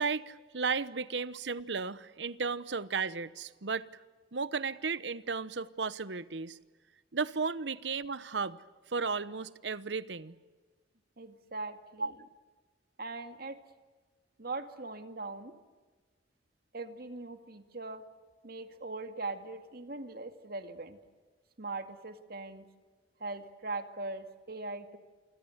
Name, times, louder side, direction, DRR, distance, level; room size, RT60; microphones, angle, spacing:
voice 1, 0.0-3.9 4.3-6.6 7.1-8.6 8.9-10.3 12.0-12.1, right 5 dB, 75° right, 1.0 m, -34 dB
voice 2, 11.2-12.1 13.0-13.6 14.4-15.5 16.7-18.0 18.4-21.0 21.6-22.7 23.2-25.0, right 3 dB, 55° right, 2.2 m, -40 dB
28.0 x 24.5 x 8.1 m
head